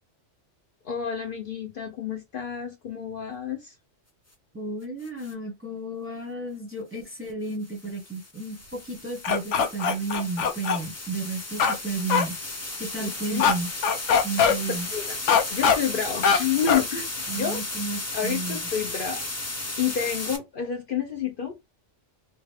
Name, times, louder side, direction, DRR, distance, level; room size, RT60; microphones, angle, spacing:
voice 1, 0.8-3.7 13.0-13.5 14.9-15.2 15.5-17.1 17.3-17.6 18.1-19.2 19.8-21.6, left 8 dB, 55° left, 0.7 m, -29 dB
voice 2, 4.5-12.3 12.8-13.7 14.2-14.9 17.3-18.6, right 3 dB, 15° right, 0.8 m, -32 dB
sound 1, 5.0-5.3 7.5-20.4, left 2 dB, 20° left, 0.4 m, -35 dB
sound 2, 9.2-10.8 11.6-11.8 12.1-12.2 13.4-13.5 13.8-14.5 15.3-15.8 16.2-16.4 16.7-16.8, left 6 dB, 85° left, 0.9 m, -21 dB
3.2 x 2.4 x 3.2 m
omnidirectional pair, 1.2 m